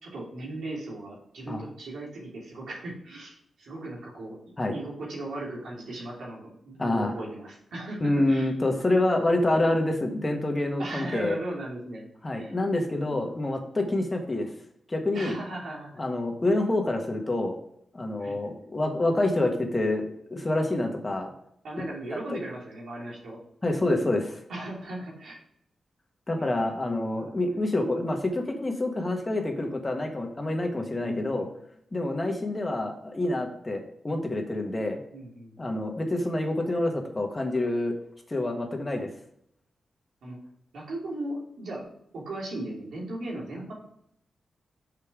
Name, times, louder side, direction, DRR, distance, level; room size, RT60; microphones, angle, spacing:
voice 1, 0.0-4.4 4.7-8.5 10.8-12.0 12.3-12.6 15.1-16.0 18.2-18.5 21.6-23.4 24.5-25.4 26.4-27.6 31.0-31.5 35.1-35.9 40.2-40.4 40.7-41.8 42.1-43.7, right 1 dB, 85° right, -4 dB, 2.9 m, -37 dB
voice 2, 6.8-7.1 8.0-11.4 12.2-14.5 14.9-15.3 16.0-17.5 17.9-21.3 22.3-22.4 23.6-24.4 26.3-31.5 31.9-35.0 35.6-37.9 38.3-39.1, left 2 dB, 25° left, 3 dB, 1.4 m, -27 dB
6.6 x 5.4 x 4.9 m, 0.71 s
cardioid pair, 85°, 0 cm